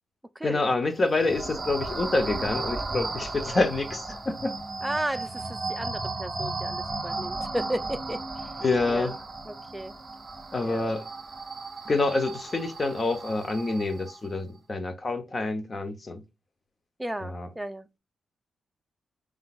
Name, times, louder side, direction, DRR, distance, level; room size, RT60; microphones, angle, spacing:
voice 1, 0.4-4.6 8.6-9.1 10.5-11.1 11.9-16.2 17.3-17.5, left 3 dB, 35° left, 0.9 m, -27 dB
sound 1, 0.9-14.3, right 3 dB, 30° right, 1.8 m, -35 dB
voice 2, 4.8-8.5 8.9-9.1 9.4-9.9 10.6-11.0 17.0-18.0, right 1 dB, 10° right, 0.5 m, -34 dB
4.8 x 3.8 x 2.4 m
cardioid pair, 85°, 0 cm